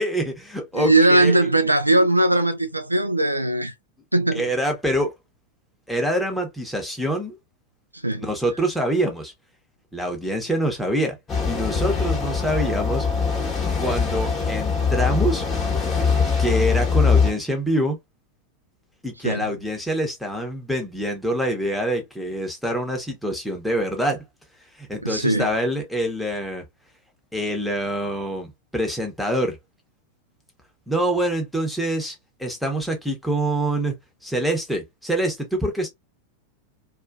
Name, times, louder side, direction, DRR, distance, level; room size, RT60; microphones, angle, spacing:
voice 1, 0.0-1.4 4.3-5.1 5.9-7.4 8.2-9.3 9.9-11.2 11.4-13.1 13.8-15.4 16.4-18.0 19.0-24.2 24.8-26.6 27.3-29.6 30.9-34.0 34.2-35.9, right 1 dB, ahead, 1.0 m, -25 dB
voice 2, 0.7-3.7 4.1-4.5 7.9-8.2 19.2-19.5 25.0-25.5, right 2 dB, 85° right, 0.3 m, -19 dB
sound 1, 11.3-17.3, left 5 dB, 20° left, 1.2 m, -22 dB
2.6 x 2.5 x 2.3 m
figure-of-eight pair, 90°, 0 cm